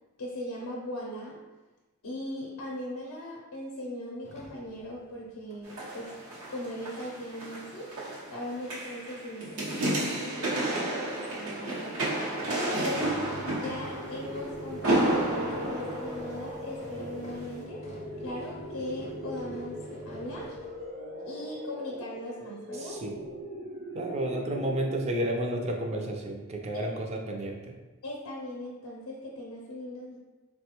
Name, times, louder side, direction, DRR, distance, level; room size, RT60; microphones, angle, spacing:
voice 1, 0.2-1.4 2.0-6.1 6.5-7.9 8.3-13.1 13.5-17.8 18.2-20.6 21.2-23.0 24.4-24.5 28.0-30.2, left 1 dB, 80° left, -3 dB, 0.5 m, -39 dB
sound 1, 4.2-5.7 5.9-6.0 12.5-20.8, left 1 dB, 30° left, 0.4 m, -47 dB
sound 2, 5.6-16.9 17.4-17.5, right 1 dB, 90° right, 0.8 m, -32 dB
sound 3, 13.8-26.6, equal, 60° right, 0.9 m, -41 dB
voice 2, 22.7-23.1 23.9-27.7, right 1 dB, 30° right, 1 dB, 0.4 m, -31 dB
3.9 x 2.2 x 2.9 m, 1.2 s
head